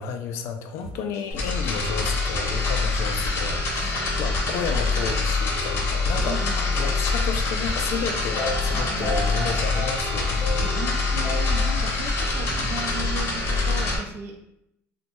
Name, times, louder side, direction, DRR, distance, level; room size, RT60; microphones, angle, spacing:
voice 1, 0.0-10.5 12.5-12.8, left 6 dB, 60° left, 6 dB, 0.3 m, -32 dB
sound 1, 0.8-1.3 1.8-2.6 3.1-3.9 4.3-4.5 4.8-5.3 5.8-6.6 7.1-7.9 8.5-9.3 9.6-9.9 10.1-10.6 11.1-13.3, right 1 dB, 85° right, 0.8 m, -38 dB
sound 2, 1.3-14.0, left 3 dB, 45° left, 0.8 m, -25 dB
voice 2, 1.5-1.8 2.8-3.1 3.8-4.1 6.1-7.0 8.7-9.2 10.6-14.5, right 4 dB, 45° right, 2 dB, 0.5 m, -38 dB
sound 3, 3.4-4.0 4.3-5.3 5.7-11.8, left 1 dB, 5° left, 0.5 m, -36 dB
2.6 x 2.1 x 2.9 m, 0.77 s
cardioid pair, 140°, 5 cm